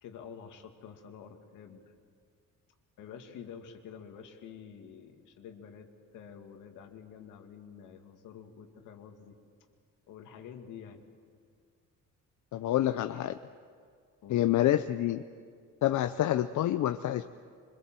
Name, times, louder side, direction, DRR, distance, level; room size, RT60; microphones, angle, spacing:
voice 1, 0.0-1.9 3.0-9.4 10.1-11.0 14.2-14.5, left 7 dB, 90° left, 4 dB, 2.3 m, -48 dB
voice 2, 12.5-13.4 14.3-15.2 15.8-17.2, left 13 dB, 70° left, 9 dB, 0.7 m, -27 dB
25.5 x 22.0 x 7.6 m, 2.1 s
cardioid pair, 90°, 30 cm